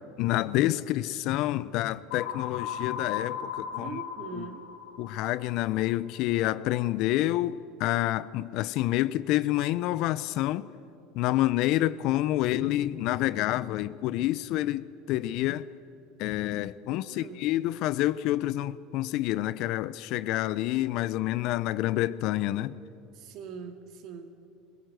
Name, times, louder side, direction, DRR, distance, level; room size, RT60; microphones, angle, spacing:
voice 1, 0.2-4.0 4.3-4.4 5.0-10.7 11.1-15.7 16.2-22.8, left 15 dB, 60° left, 0.6 m, -28 dB
sound 1, 2.1-6.0, left 9 dB, 75° left, 2.9 m, -37 dB
voice 2, 3.7-4.7 16.9-17.5 23.1-24.3, right 6 dB, 55° right, 2.2 m, -42 dB
21.5 x 16.0 x 7.8 m
supercardioid pair, 95°, 0 cm